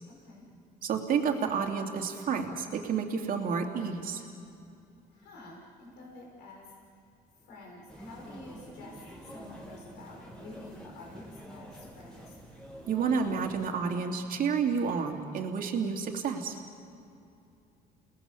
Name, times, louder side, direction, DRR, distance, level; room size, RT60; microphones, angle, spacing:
voice 1, 0.1-0.5 5.1-6.7 7.4-12.4, left 2 dB, 80° left, -1 dB, 6.2 m, -50 dB
voice 2, 0.8-4.2 12.9-16.6, right 6 dB, 55° right, 2 dB, 2.8 m, -30 dB
sound 1, 7.9-13.7, equal, 5° left, 5.0 m, -47 dB
30.0 x 19.5 x 7.1 m, 2.6 s
cardioid pair, 110°, 17 cm